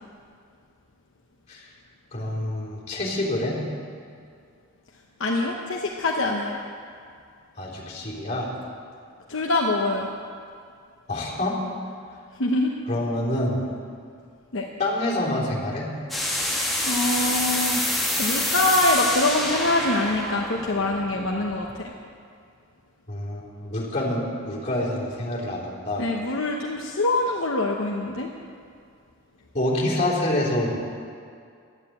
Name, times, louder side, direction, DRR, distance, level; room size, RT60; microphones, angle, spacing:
voice 1, 2.1-3.6 7.6-8.5 11.1-11.6 12.9-13.6 14.8-15.9 23.1-26.1 29.5-30.8, left 1 dB, 35° left, -4 dB, 3.6 m, -27 dB
voice 2, 5.2-6.6 9.3-10.1 12.4-12.7 14.5-14.7 16.9-17.8 18.2-21.9 26.0-28.3, left 2 dB, 65° left, -1 dB, 1.0 m, -24 dB
sound 1, 16.1-21.8, left 1 dB, ahead, 2.3 m, -27 dB
12.0 x 9.7 x 8.6 m, 2.3 s
head